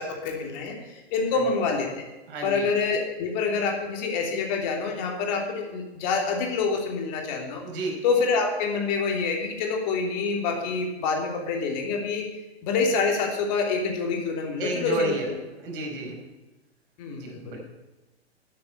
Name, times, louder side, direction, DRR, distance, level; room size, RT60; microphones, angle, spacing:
voice 1, 0.0-2.0 2.4-7.7 8.0-12.3 12.6-15.2 17.0-17.6, left 4 dB, 40° left, 2 dB, 3.0 m, -27 dB
voice 2, 2.3-2.7 7.6-8.0 14.6-15.3 15.6-16.2 17.1-17.6, right 2 dB, 55° right, 0 dB, 4.9 m, -31 dB
10.5 x 8.7 x 9.7 m, 1.1 s
figure-of-eight pair, 110°, 33 cm